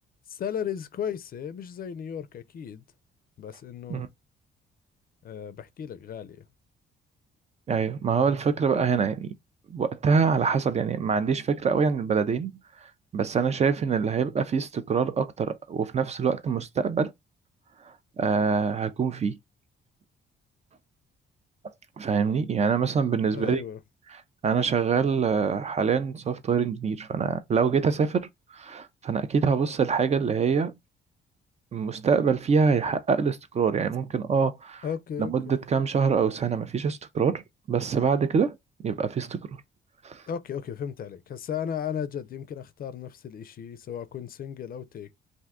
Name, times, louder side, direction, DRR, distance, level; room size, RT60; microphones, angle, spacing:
voice 1, 0.3-2.8 3.4-4.0 5.2-6.4 23.3-23.8 34.8-35.6 40.3-45.2, left 8 dB, 50° left, 0.4 m, -35 dB
voice 2, 7.7-9.3 9.7-12.5 12.8-12.9 13.1-17.1 18.2-19.4 22.0-23.6 24.4-30.7 31.7-34.8 35.2-37.4 37.7-38.5 38.8-39.6 40.0-40.2, right 6 dB, 35° right, 0.4 m, -25 dB
2.6 x 2.2 x 3.5 m
cardioid pair, 90°, 20 cm